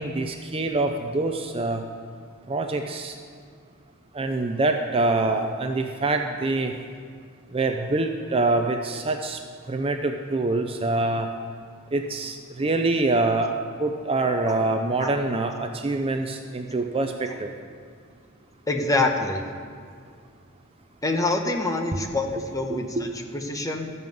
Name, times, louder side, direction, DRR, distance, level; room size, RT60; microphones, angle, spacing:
voice 1, 0.0-1.8 2.5-3.1 4.2-6.7 7.5-9.4 9.7-11.3 11.9-13.5 13.8-17.5 21.9-22.0 22.9-23.0, right 2 dB, 25° right, 5 dB, 0.5 m, -25 dB
voice 2, 18.7-19.4 21.0-23.9, left 2 dB, 15° left, 3 dB, 1.0 m, -26 dB
13.5 x 5.5 x 7.7 m, 2.1 s
head